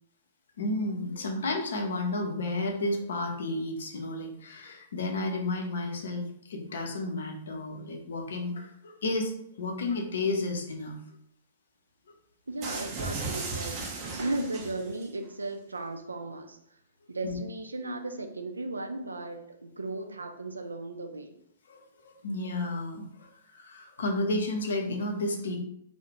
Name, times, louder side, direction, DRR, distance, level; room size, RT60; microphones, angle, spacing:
voice 1, 0.6-11.0 17.2-17.4 21.7-25.6, left 2 dB, 65° left, 2 dB, 0.5 m, -32 dB
voice 2, 12.5-13.8 14.2-16.6 17.1-21.4, right 2 dB, 80° right, 5 dB, 0.3 m, -36 dB
sound 1, 12.6-15.1, right 3 dB, 35° right, 0.6 m, -36 dB
2.3 x 2.0 x 3.0 m, 0.71 s
figure-of-eight pair, 110°, 0 cm